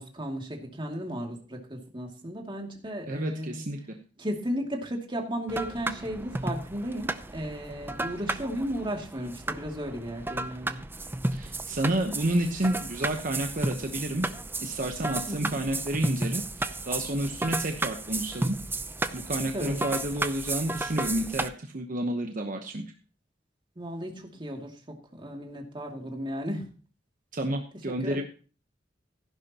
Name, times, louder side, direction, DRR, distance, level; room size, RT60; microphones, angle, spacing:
voice 1, 0.0-3.6 4.2-10.8 15.3-15.5 19.5-19.9 23.8-24.7 25.1-26.6 28.0-28.2, equal, 25° right, 1 dB, 2.5 m, -34 dB
voice 2, 3.1-3.8 11.3-14.3 14.6-18.6 19.1-22.8 27.3-28.2, right 1 dB, 45° right, 4 dB, 1.0 m, -30 dB
sound 1, 5.5-21.5, right 2 dB, 10° right, 0.6 m, -33 dB
15.0 x 11.0 x 2.9 m, 0.38 s
head